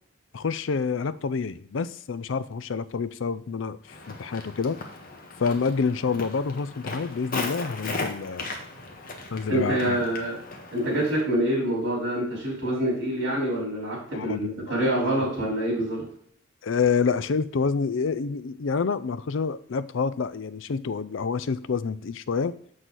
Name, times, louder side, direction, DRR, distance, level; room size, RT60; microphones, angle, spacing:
voice 1, 0.3-3.8 4.1-4.8 5.4-8.5 9.3-10.0 14.1-14.7 15.0-15.3 16.6-22.5, left 5 dB, 70° left, 15 dB, 0.5 m, -28 dB
Walk footsteps, 3.9-11.2, left 3 dB, 45° left, 1.3 m, -37 dB
voice 2, 9.5-10.3 10.7-16.0, right 1 dB, 65° right, -8 dB, 4.0 m, -26 dB
7.7 x 6.4 x 4.0 m, 0.64 s
head